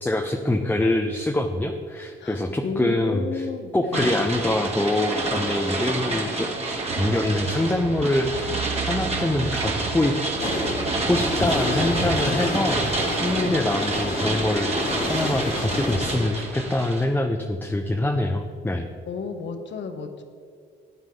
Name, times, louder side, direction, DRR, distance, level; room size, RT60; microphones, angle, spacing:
voice 1, 0.0-3.5 3.7-8.6 8.9-10.1 11.1-18.9, left 1 dB, 10° left, 4 dB, 0.8 m, -25 dB
voice 2, 2.2-4.1 13.4-13.7 19.1-20.2, left 5 dB, 65° left, 6 dB, 1.3 m, -32 dB
sound 1, 3.9-17.1, right 2 dB, 30° right, 2.2 m, -28 dB
sound 2, 6.9-12.5, right 8 dB, 90° right, 0.7 m, -35 dB
sound 3, 10.4-16.3, left 2 dB, 45° left, 2.1 m, -29 dB
14.5 x 9.6 x 3.9 m, 2.2 s
cardioid pair, 90°, 20 cm